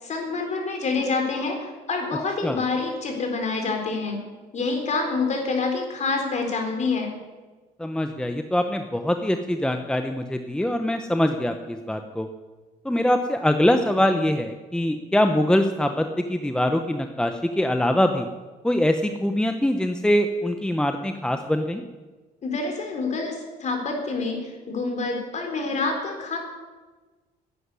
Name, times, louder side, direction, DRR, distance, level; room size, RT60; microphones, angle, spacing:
voice 1, 0.0-1.6 1.9-4.2 4.5-7.1 22.4-26.4, left 3 dB, 45° left, 3 dB, 4.1 m, -27 dB
voice 2, 7.8-12.3 12.8-18.3 18.6-21.8, left 1 dB, 5° left, 6 dB, 0.8 m, -23 dB
11.0 x 10.0 x 9.7 m, 1.3 s
cardioid pair, 110°, 17 cm